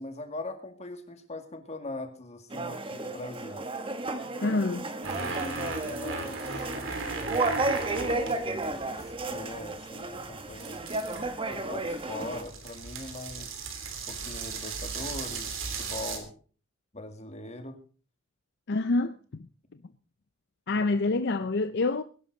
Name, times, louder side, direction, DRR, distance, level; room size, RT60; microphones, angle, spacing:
voice 1, 0.0-3.6 5.2-6.7 7.9-8.9 9.2-10.8 11.5-13.7 14.1-16.3 16.9-17.8 20.7-20.9 21.4-21.5, left 2 dB, 35° left, 2.2 m, -41 dB
sound 1, 2.5-12.4, right 2 dB, 25° right, 1.3 m, -33 dB
voice 2, 4.4-4.9 18.7-19.5 20.7-22.0, left 3 dB, 60° left, 0.6 m, -27 dB
sound 2, 5.0-16.2, right 4 dB, 90° right, 3.2 m, -37 dB
21.0 x 11.0 x 3.9 m
head